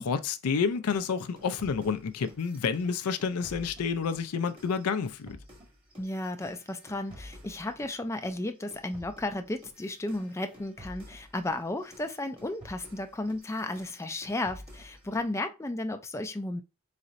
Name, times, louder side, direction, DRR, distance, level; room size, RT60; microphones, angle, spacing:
voice 1, 0.0-5.4, left 5 dB, 85° left, 0.5 m, -29 dB
sound 1, 0.9-8.0 8.2-15.3, equal, 25° right, 1.4 m, -51 dB
voice 2, 6.0-16.6, left 2 dB, 10° left, 0.4 m, -34 dB
4.1 x 4.1 x 2.5 m
head